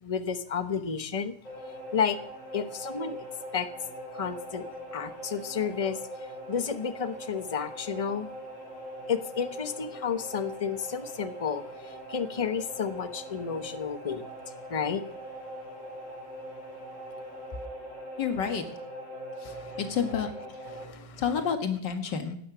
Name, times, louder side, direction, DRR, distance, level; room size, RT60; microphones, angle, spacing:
voice 1, 0.0-1.3 1.9-2.2 2.5-3.2 3.5-3.7 4.1-4.6 4.9-6.0 6.5-8.3 9.1-14.2 14.7-15.0 19.4-19.8 20.7-21.2, left 6 dB, 30° left, 11 dB, 0.7 m, -31 dB
sound 1, 1.4-20.8, equal, 45° left, 6.2 m, -42 dB
voice 2, 18.2-18.6 19.4-20.3 21.2-22.4, left 7 dB, 85° left, 7 dB, 2.3 m, -29 dB
17.0 x 12.0 x 6.0 m, 0.71 s
omnidirectional pair, 1.9 m